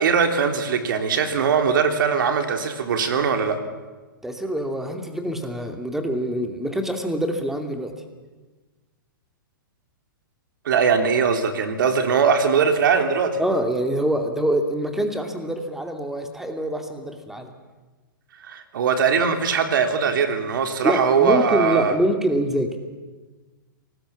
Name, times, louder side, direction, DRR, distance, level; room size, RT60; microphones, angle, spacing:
voice 1, 0.0-3.6 10.7-13.4 18.4-21.9, right 6 dB, 65° right, 7 dB, 3.6 m, -21 dB
voice 2, 4.2-7.9 13.4-17.5 20.8-22.8, right 1 dB, 5° right, 5 dB, 2.6 m, -25 dB
27.5 x 19.5 x 7.3 m, 1.3 s
hypercardioid pair, 135°, 11 cm